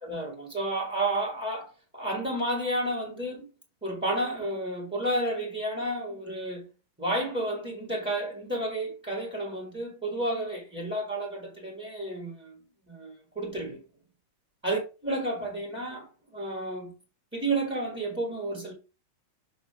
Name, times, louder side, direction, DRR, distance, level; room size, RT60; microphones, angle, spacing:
voice 1, 0.0-3.5 3.8-6.7 7.0-12.6 12.9-13.8 14.6-16.1 16.3-16.9 17.3-18.7, right 1 dB, 5° right, 1.6 m, -31 dB
7.1 x 2.9 x 5.6 m
omnidirectional pair, 2.3 m